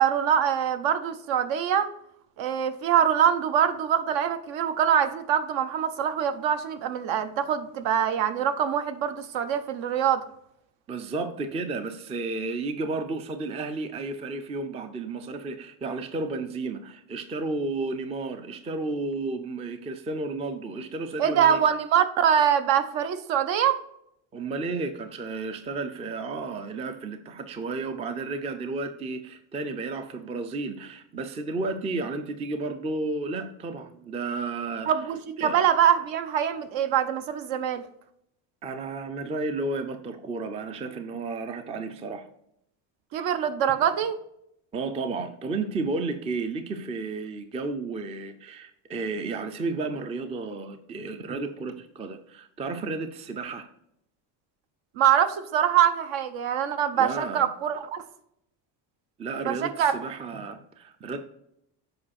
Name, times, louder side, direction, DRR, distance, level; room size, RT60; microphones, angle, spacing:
voice 1, 0.0-1.9 2.4-10.2 21.2-23.8 34.9-37.8 43.1-44.2 55.0-58.0 59.5-59.9, right 9 dB, 65° right, 0.9 m, -24 dB
voice 2, 10.9-21.6 24.3-34.9 35.4-35.6 38.6-42.3 43.2-43.3 44.7-53.7 57.0-57.5 59.2-61.2, right 3 dB, 15° right, 0.4 m, -32 dB
7.6 x 4.8 x 4.2 m
cardioid pair, 130°, 49 cm